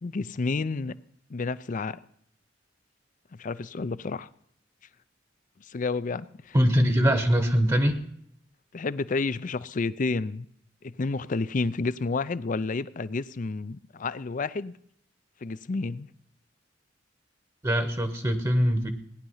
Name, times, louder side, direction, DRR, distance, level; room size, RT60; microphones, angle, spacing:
voice 1, 0.0-0.9 1.3-2.0 3.3-4.3 5.7-6.6 8.7-10.5 10.8-14.7 15.4-16.1, left 3 dB, 45° left, 0.5 m, -30 dB
voice 2, 6.5-8.1 17.6-18.9, equal, 20° right, 1.0 m, -22 dB
17.5 x 10.5 x 5.6 m
head